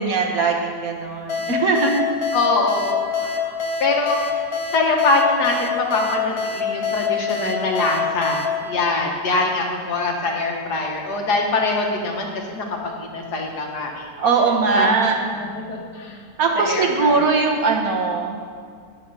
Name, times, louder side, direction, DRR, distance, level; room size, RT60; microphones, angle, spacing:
voice 1, 0.0-2.0 14.2-15.2 16.4-18.4, right 4 dB, 60° right, 2 dB, 1.6 m, -20 dB
sound 1, 1.3-9.7, left 6 dB, 40° left, 0.4 m, -26 dB
voice 2, 2.3-4.2 4.7-12.3 12.6-14.1 14.7-15.0 15.4-16.2 16.6-17.2, left 2 dB, 70° left, 1 dB, 1.9 m, -23 dB
10.0 x 8.7 x 5.6 m, 2.1 s
omnidirectional pair, 1.8 m